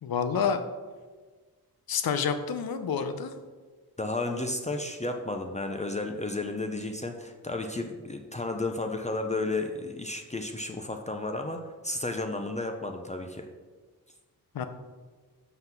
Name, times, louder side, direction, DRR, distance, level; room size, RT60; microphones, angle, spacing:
voice 1, 0.0-0.6 1.9-3.3 14.5-14.6, left 6 dB, 75° left, 9 dB, 0.7 m, -28 dB
voice 2, 4.0-13.5, left 2 dB, 20° left, 4 dB, 0.5 m, -33 dB
5.8 x 5.6 x 5.9 m, 1.4 s
wide cardioid pair, 115°, 36 cm